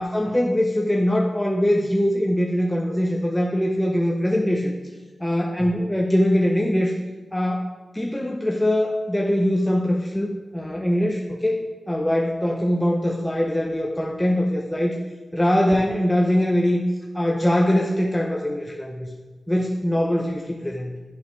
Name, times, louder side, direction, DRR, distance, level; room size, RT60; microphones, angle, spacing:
voice 1, 0.0-4.7 5.2-6.9 7.3-7.7 7.9-14.9 15.3-16.8 17.1-19.1 19.5-20.9, equal, 10° left, -1 dB, 0.6 m, -22 dB
10.5 x 4.0 x 3.1 m, 1.3 s
wide cardioid pair, 70°, 0 cm